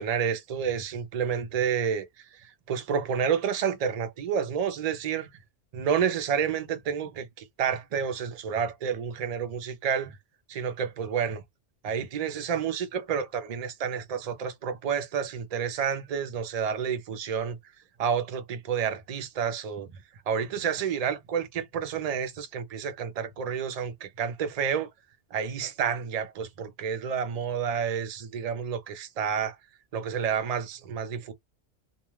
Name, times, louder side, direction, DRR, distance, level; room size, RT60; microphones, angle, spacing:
voice 1, 0.0-2.1 2.4-5.3 5.7-10.2 10.5-11.4 11.8-17.6 18.0-19.9 20.3-24.9 25.3-29.6 29.9-31.3, right 7 dB, 55° right, 0.4 m, -29 dB
2.3 x 2.2 x 3.1 m
omnidirectional pair, 1.2 m